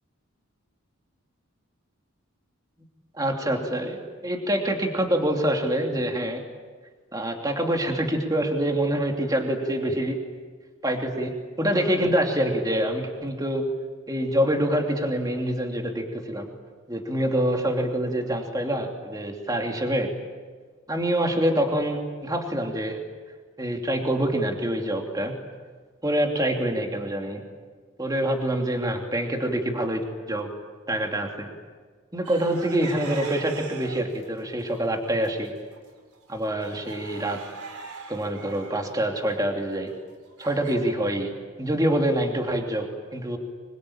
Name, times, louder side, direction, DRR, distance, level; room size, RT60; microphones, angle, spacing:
voice 1, 3.1-6.4 7.1-10.2 10.8-13.7 14.1-16.5 16.9-20.1 20.9-23.0 23.6-25.4 26.0-27.4 28.0-30.5 30.9-31.5 32.1-35.5 36.3-37.4 38.1-39.9 40.4-41.3 41.6-43.4, right 1 dB, 15° right, 2 dB, 3.0 m, -26 dB
sound 1, 32.2-34.3 34.7-35.3 35.7-35.8 36.1-40.8, right 4 dB, 85° right, 4.3 m, -42 dB
26.0 x 23.5 x 8.9 m, 1.5 s
head